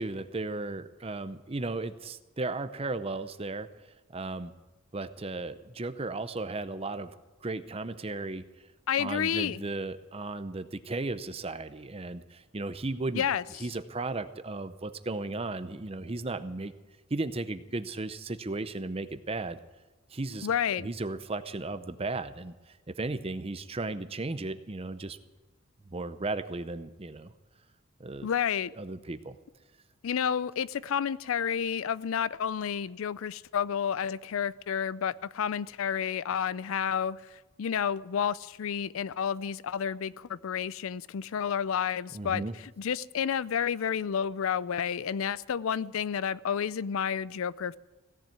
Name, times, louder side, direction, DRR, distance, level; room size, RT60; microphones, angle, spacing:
voice 1, 0.0-3.7 4.1-4.5 4.9-7.1 7.4-8.4 9.0-13.2 13.6-16.7 17.1-19.6 20.1-20.5 20.7-22.5 22.9-25.2 25.9-27.3 28.0-28.3 28.8-29.3 42.1-42.5, right 2 dB, 25° right, 12 dB, 0.6 m, -35 dB
voice 2, 8.9-9.6 13.1-13.4 20.4-20.9 28.2-28.7 30.0-47.8, left 8 dB, 70° left, 19 dB, 0.4 m, -30 dB
16.5 x 7.5 x 9.3 m, 1.2 s
head